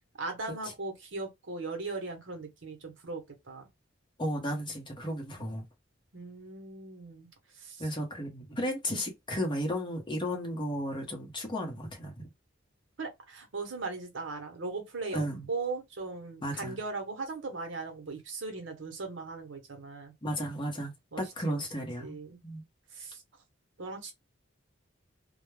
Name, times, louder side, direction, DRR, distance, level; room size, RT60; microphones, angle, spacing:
voice 1, 0.2-3.6 6.1-7.3 7.6-7.8 13.0-20.1 21.1-21.6 22.0-22.4 22.9-23.2 23.8-24.1, right 3 dB, 75° right, 0.9 m, -38 dB
voice 2, 4.2-5.6 7.8-12.3 15.1-15.5 16.4-16.8 20.2-22.2 22.4-22.6, equal, 25° left, 0.8 m, -34 dB
2.2 x 2.1 x 3.1 m
head